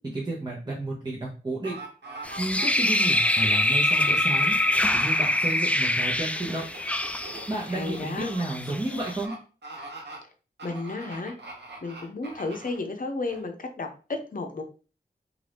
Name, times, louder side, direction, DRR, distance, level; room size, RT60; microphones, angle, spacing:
voice 1, 0.0-1.8 2.4-4.5 4.9-6.7 7.5-9.3, right 2 dB, 25° right, -4 dB, 0.8 m, -31 dB
sound 1, 1.6-3.7 6.1-8.4 9.0-9.4 9.6-10.2 10.6-12.8 13.3-13.4, right 2 dB, 75° right, 0.8 m, -42 dB
sound 2, 2.2-9.2, left 1 dB, 5° left, 0.3 m, -25 dB
voice 2, 7.7-8.3 10.6-11.4 11.8-14.6, left 3 dB, 50° left, 5 dB, 0.6 m, -33 dB
2.6 x 2.5 x 3.4 m, 0.36 s
cardioid pair, 45°, 18 cm